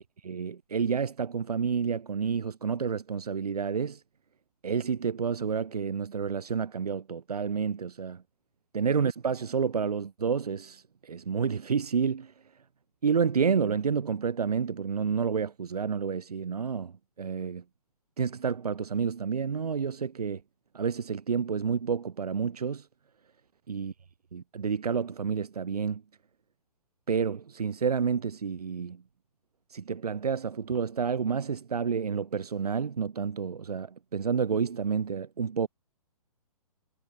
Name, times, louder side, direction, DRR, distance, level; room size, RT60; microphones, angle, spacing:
voice 1, 0.2-4.0 4.6-8.2 8.7-12.3 13.0-16.9 17.2-17.6 18.2-20.4 20.7-22.9 23.7-23.9 24.3-26.0 27.1-29.0 29.7-35.7, right 6 dB, 85° right, 0.6 m, -29 dB
figure-of-eight pair, 130°, 19 cm